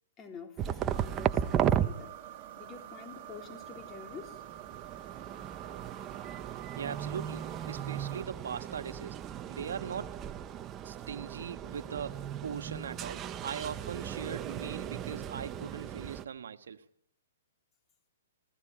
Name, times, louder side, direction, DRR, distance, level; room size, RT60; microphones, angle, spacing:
voice 1, 0.2-4.4, left 6 dB, 20° left, 3.8 m, -48 dB
sound 1, 0.6-1.9 3.5-16.3, right 10 dB, 20° right, 1.0 m, -36 dB
sound 2, 0.9-8.3, right 12 dB, 40° right, 2.3 m, -47 dB
voice 2, 6.8-9.2 9.5-10.2 10.8-16.9, right 7 dB, 75° right, 1.5 m, -40 dB
28.5 x 17.0 x 8.9 m
hypercardioid pair, 145°, 0 cm